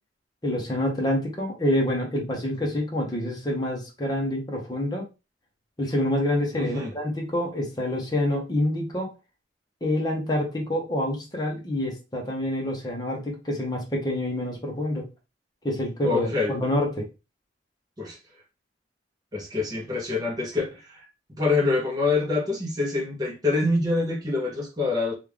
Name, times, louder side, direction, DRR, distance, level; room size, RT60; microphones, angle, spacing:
voice 1, 0.4-5.0 5.8-9.1 9.8-15.1 15.6-17.1, left 1 dB, 20° left, 0 dB, 0.9 m, -27 dB
voice 2, 6.5-6.9 16.0-16.5 18.0-18.2 19.3-21.1 21.4-25.1, left 3 dB, 20° right, -3 dB, 0.8 m, -25 dB
3.1 x 2.4 x 3.4 m, 0.29 s
head